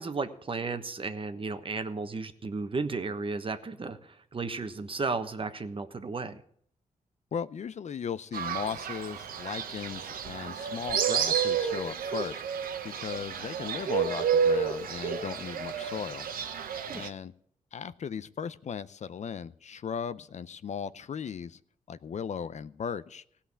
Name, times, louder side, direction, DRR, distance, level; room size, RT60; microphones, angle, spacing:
voice 1, 0.0-6.4 16.9-17.1, right 4 dB, 40° right, 9 dB, 1.2 m, -34 dB
voice 2, 7.3-12.4 12.8-16.3 16.9-17.3 17.7-21.6 21.9-23.2, left 7 dB, 55° left, 15 dB, 0.5 m, -37 dB
Fowl, 8.3-17.1, right 7 dB, 85° right, 1.0 m, -30 dB
16.5 x 5.8 x 8.4 m, 0.65 s
cardioid pair, 75°, 15 cm